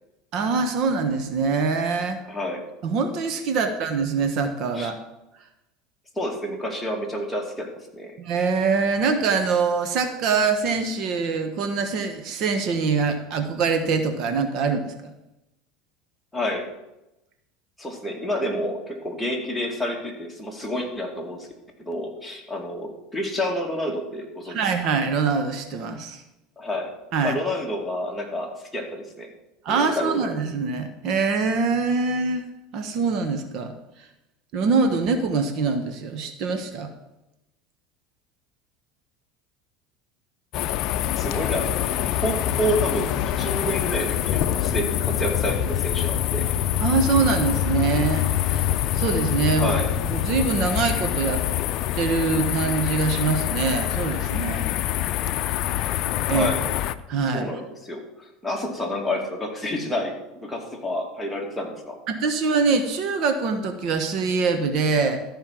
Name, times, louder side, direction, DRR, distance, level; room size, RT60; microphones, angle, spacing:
voice 1, 0.3-2.2 2.8-5.0 8.2-14.9 24.5-26.2 27.1-27.4 29.6-32.5 32.7-33.7 34.5-36.9 46.8-48.7 48.9-49.8 50.0-51.4 51.9-54.7 56.3-56.5 57.1-57.5 62.1-65.2, right 4 dB, 55° right, 8 dB, 1.3 m, -24 dB
voice 2, 2.3-2.6 4.7-4.9 6.2-8.2 16.3-16.7 17.8-21.5 21.8-24.6 26.6-26.9 27.2-29.3 29.7-30.3 41.2-46.4 49.6-49.9 56.3-56.6 57.3-62.0, left 1 dB, 5° left, -1 dB, 2.6 m, -29 dB
sound 1, 40.5-57.0, left 12 dB, 55° left, 0.6 m, -25 dB
13.5 x 5.5 x 7.5 m, 0.94 s
supercardioid pair, 105°, 0 cm